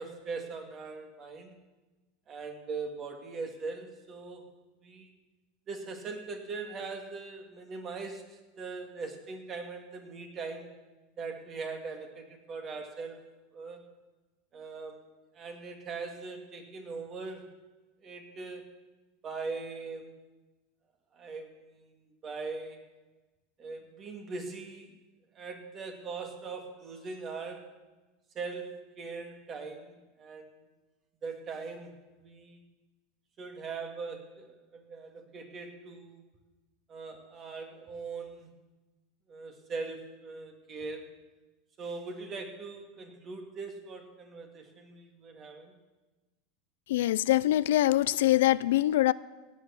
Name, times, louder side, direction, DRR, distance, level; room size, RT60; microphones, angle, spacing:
voice 1, 0.0-1.5 2.3-4.5 4.8-5.1 5.7-10.7 11.2-13.2 13.5-13.8 14.5-15.1 15.3-17.5 18.0-18.7 19.2-20.1 21.1-21.9 22.2-22.8 23.6-24.9 25.3-27.7 28.3-30.7 31.2-32.6 33.4-36.2 36.9-38.5 39.3-41.1 41.8-45.7, right 4 dB, 30° right, 2.2 m, -41 dB
voice 2, 46.9-49.1, left 14 dB, 85° left, 0.4 m, -24 dB
16.5 x 8.4 x 7.1 m
supercardioid pair, 140°, 0 cm